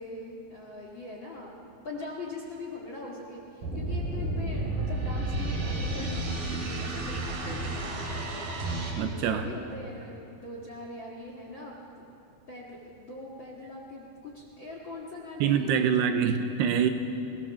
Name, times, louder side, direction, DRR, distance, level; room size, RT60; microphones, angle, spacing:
voice 1, 0.0-1.5 1.8-12.1 12.5-15.9, left 2 dB, 45° left, -2 dB, 1.7 m, -42 dB
sound 1, 3.6-8.9, right 2 dB, 55° right, 4.2 m, -31 dB
voice 2, 9.0-9.5 15.4-16.9, right 7 dB, 75° right, 7 dB, 2.7 m, -25 dB
22.5 x 18.0 x 7.1 m, 2.7 s
omnidirectional pair, 5.0 m